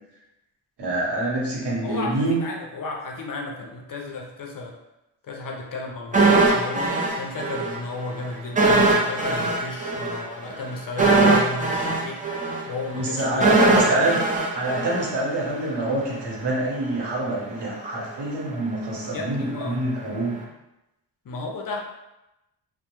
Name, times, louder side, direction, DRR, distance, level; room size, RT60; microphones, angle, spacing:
voice 1, 0.8-2.4 12.9-14.2 14.5-20.3, right 1 dB, 65° right, -4 dB, 1.0 m, -25 dB
voice 2, 1.8-4.7 5.2-12.2 12.7-14.0 19.0-19.8 21.3-21.8, left 3 dB, 50° left, 1 dB, 0.5 m, -33 dB
sound 1, 6.1-7.8 8.0-8.2 8.6-15.6 15.9-16.1, right 3 dB, 20° right, 0.4 m, -21 dB
2.2 x 2.1 x 2.9 m, 0.93 s
cardioid pair, 65°, 43 cm